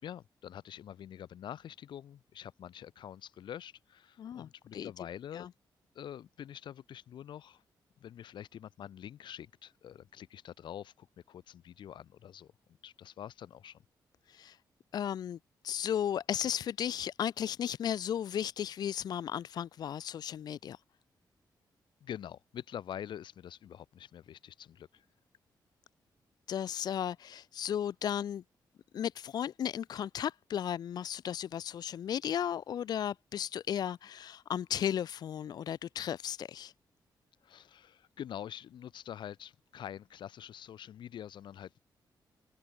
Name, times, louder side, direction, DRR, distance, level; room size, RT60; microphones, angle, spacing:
voice 1, 0.0-5.5 5.9-7.6 8.0-12.5 12.8-13.8 22.0-25.1 37.4-41.8, left 10 dB, 80° left, 2.4 m, -46 dB
voice 2, 4.2-4.9 5.3-5.5 14.3-14.6 14.9-15.4 15.6-20.8 26.5-28.4 28.9-36.7, left 9 dB, 60° left, 0.5 m, -35 dB
open air
wide cardioid pair, 165°, 8 cm